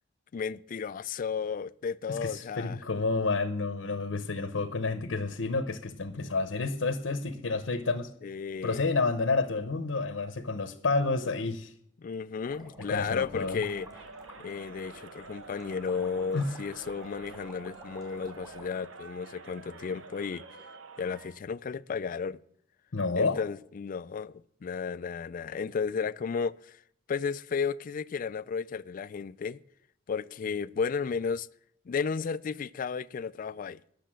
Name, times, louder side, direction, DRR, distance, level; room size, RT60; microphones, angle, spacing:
voice 1, 0.3-2.8 8.2-8.9 12.0-13.9 14.4-20.5 21.0-22.4 23.2-26.8 27.1-29.6 30.1-31.5 31.9-33.8, left 5 dB, 45° left, 0.3 m, -33 dB
voice 2, 2.1-8.1 8.6-11.7 12.8-13.6 16.3-16.5 22.9-23.4, left 3 dB, 80° left, 0.8 m, -30 dB
sound 1, 12.5-18.7, right 1 dB, 20° right, 3.1 m, -51 dB
Crowd, 13.3-21.4, right 4 dB, 85° right, 0.9 m, -48 dB
10.5 x 6.6 x 7.5 m
head